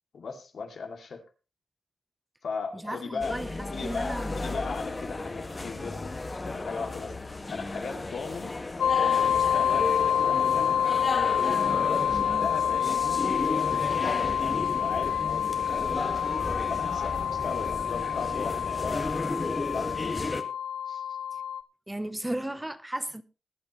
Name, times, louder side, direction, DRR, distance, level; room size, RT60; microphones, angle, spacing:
voice 1, 0.1-1.2 2.4-3.4 3.6-7.1 7.5-8.5 9.0-10.7 11.7-16.2 16.7-19.1 19.3-19.9 20.9-21.0, left 5 dB, 70° left, 2.6 m, -38 dB
voice 2, 2.7-3.5 3.8-4.4 12.1-12.5 21.9-23.2, right 1 dB, 15° right, 0.8 m, -35 dB
sound 1, 3.2-20.4, left 2 dB, 30° left, 1.9 m, -34 dB
sound 2, 8.8-21.6, left 9 dB, 90° left, 0.6 m, -27 dB
21.0 x 8.6 x 3.2 m
cardioid pair, 65°, 0 cm